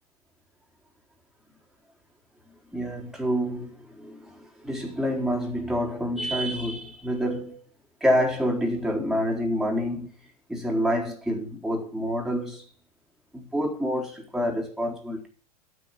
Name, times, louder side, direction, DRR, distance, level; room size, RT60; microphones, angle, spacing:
voice 1, 2.7-7.6 8.0-10.1 10.5-12.6 13.3-15.3, equal, ahead, 4.3 m, -27 dB
9.4 x 7.8 x 7.0 m
figure-of-eight pair, 85°, 19 cm